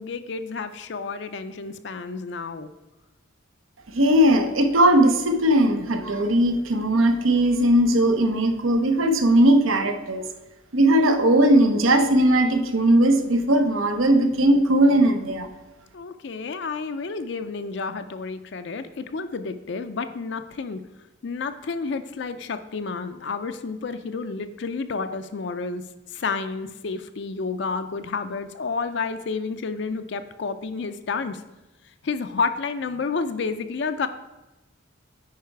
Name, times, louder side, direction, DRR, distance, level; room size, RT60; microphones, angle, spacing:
voice 1, 0.0-2.7 15.9-20.8 21.2-25.8 26.1-31.4 32.0-34.1, left 4 dB, 60° left, 9 dB, 0.4 m, -30 dB
voice 2, 3.9-10.2 10.7-15.5, right 1 dB, 85° right, 7 dB, 0.9 m, -19 dB
9.5 x 4.8 x 4.6 m, 1.0 s
head